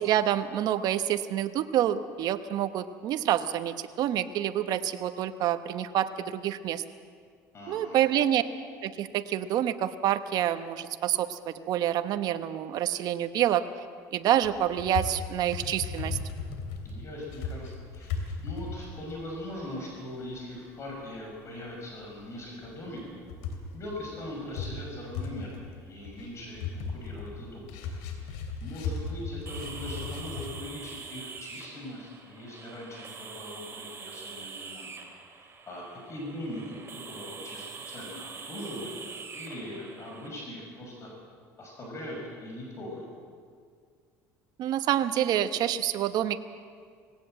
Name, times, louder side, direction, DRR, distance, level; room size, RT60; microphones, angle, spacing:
voice 1, 0.0-6.8 7.7-8.4 8.8-13.6 14.1-16.2 44.6-46.4, right 11 dB, 60° right, 10 dB, 1.1 m, -27 dB
voice 2, 7.5-8.1 16.8-23.2 23.7-27.9 28.2-34.9 35.7-36.8 37.1-39.0 39.3-41.1 41.6-43.1, left 1 dB, 35° left, -1 dB, 5.8 m, -41 dB
sound 1, 14.4-19.9 20.2-20.3 20.8-21.2 21.7-21.8 22.0-22.1 22.4-22.7 23.0-30.5, left 5 dB, 85° left, 2.9 m, -36 dB
sound 2, 29.5-40.3, right 5 dB, 35° right, 2.9 m, -44 dB
20.0 x 17.0 x 7.7 m, 2.1 s
supercardioid pair, 110°, 8 cm